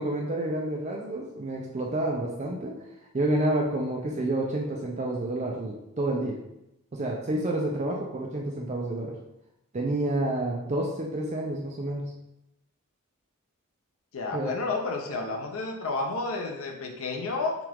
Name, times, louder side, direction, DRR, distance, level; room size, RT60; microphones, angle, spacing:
voice 1, 0.0-2.7 3.1-6.4 6.9-9.1 9.7-12.1 14.3-14.5, right 1 dB, 30° right, -1 dB, 0.4 m, -29 dB
voice 2, 14.1-17.6, left 3 dB, 75° left, 1 dB, 0.6 m, -31 dB
5.9 x 2.4 x 3.5 m, 0.87 s
head